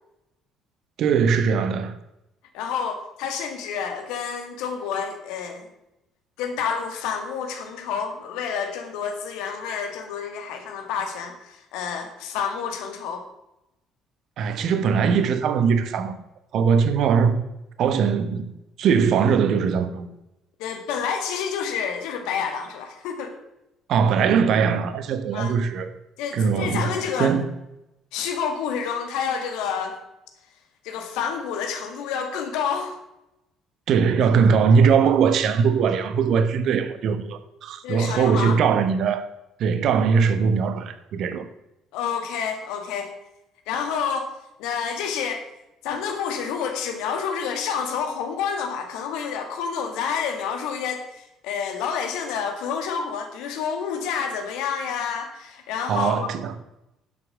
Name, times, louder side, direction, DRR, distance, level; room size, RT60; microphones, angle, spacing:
voice 1, 1.0-2.0 14.4-16.1 16.5-17.4 17.8-18.5 18.8-20.1 23.9-25.9 26.3-27.5 33.9-39.3 39.6-41.5 55.9-56.6, right 6 dB, 55° right, 1.2 m, -21 dB
voice 2, 2.5-5.7 6.4-13.3 20.6-23.4 25.3-25.5 26.2-27.4 28.1-30.0 30.8-33.0 37.8-38.6 41.9-43.1 43.7-44.3 44.6-45.5 45.8-56.3, left 6 dB, 65° left, 1.9 m, -29 dB
11.0 x 7.9 x 6.2 m
figure-of-eight pair, 50°, 0 cm